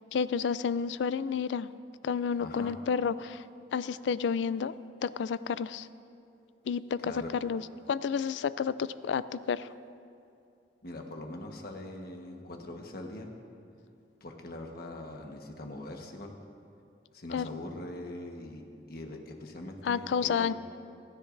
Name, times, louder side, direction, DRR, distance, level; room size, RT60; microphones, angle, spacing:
voice 1, 0.1-1.7 2.0-3.4 3.7-4.7 5.0-5.9 6.7-7.1 7.4-7.6 7.9-9.7 17.3-17.5 19.8-20.5, left 6 dB, 80° left, 16 dB, 0.3 m, -30 dB
voice 2, 2.4-2.7 7.0-7.3 10.8-13.3 14.2-16.3 17.1-18.6 18.9-20.5, left 1 dB, 60° left, 3 dB, 1.3 m, -42 dB
27.5 x 10.0 x 2.6 m, 2.5 s
head